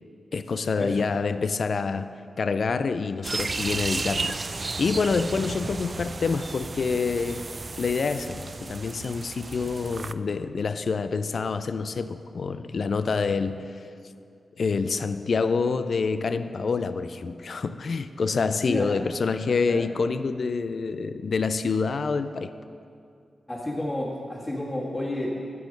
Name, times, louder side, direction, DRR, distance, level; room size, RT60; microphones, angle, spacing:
voice 1, 0.3-7.5 7.8-13.8 14.6-22.5, left 4 dB, 65° left, 0.3 m, -27 dB
sound 1, 3.2-10.1, right 3 dB, 45° right, 0.3 m, -33 dB
voice 2, 18.6-19.0 19.6-19.9 23.5-25.3, left 1 dB, 30° left, 1.6 m, -30 dB
13.5 x 4.5 x 5.2 m
supercardioid pair, 40°, 0 cm